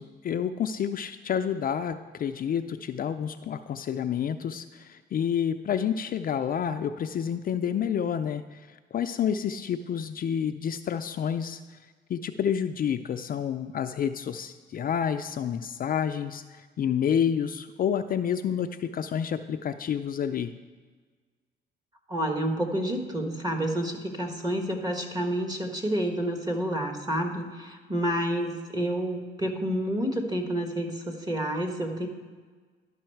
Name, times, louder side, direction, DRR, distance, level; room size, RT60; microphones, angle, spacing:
voice 1, 0.0-8.6 8.9-11.6 12.1-16.4 16.8-20.5, left 8 dB, 45° left, 8 dB, 0.4 m, -29 dB
voice 2, 22.1-32.1, right 1 dB, 20° right, 4 dB, 1.3 m, -29 dB
12.0 x 5.6 x 4.5 m, 1.5 s
cardioid pair, 90°, 20 cm